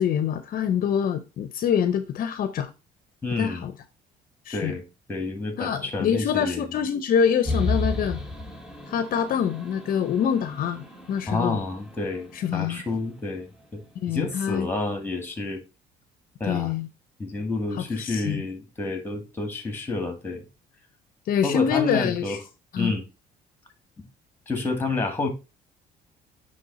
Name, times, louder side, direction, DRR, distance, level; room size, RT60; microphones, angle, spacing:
voice 1, 0.0-2.7 3.4-3.7 4.5-4.7 5.6-8.2 8.9-11.6 12.3-12.8 14.0-14.7 16.5-16.9 17.7-18.4 21.3-22.4 22.7-22.9, left 8 dB, 55° left, 0.6 m, -25 dB
voice 2, 3.2-3.7 4.5-4.8 5.1-6.7 11.3-13.8 14.1-15.6 16.4-16.7 17.2-20.4 21.4-22.4 22.8-23.0 24.0-24.1 24.5-25.3, left 3 dB, 15° left, 2.0 m, -29 dB
sound 1, 7.5-13.0, left 2 dB, 5° right, 1.3 m, -32 dB
9.3 x 3.3 x 4.0 m
cardioid pair, 110°, 17 cm